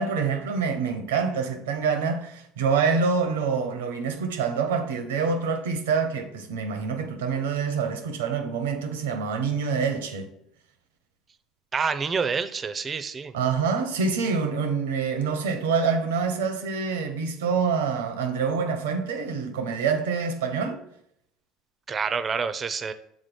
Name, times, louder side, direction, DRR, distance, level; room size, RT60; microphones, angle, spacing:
voice 1, 0.0-10.3 13.3-20.8, right 5 dB, 85° right, 0.9 m, -26 dB
voice 2, 11.7-13.3 21.9-22.9, right 5 dB, 35° right, 0.6 m, -27 dB
6.3 x 3.7 x 5.2 m
hypercardioid pair, 70°, 0 cm